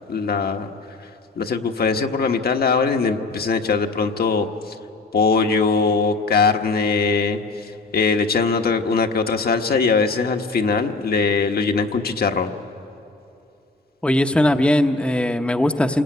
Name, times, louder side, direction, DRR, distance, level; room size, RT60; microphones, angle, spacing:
voice 1, 0.1-0.7 1.4-4.5 5.1-12.5, left 4 dB, 65° left, 4 dB, 1.3 m, -21 dB
voice 2, 14.0-16.0, left 1 dB, 5° left, 6 dB, 0.8 m, -19 dB
28.0 x 22.0 x 9.3 m, 2.8 s
wide cardioid pair, 125°, 17 cm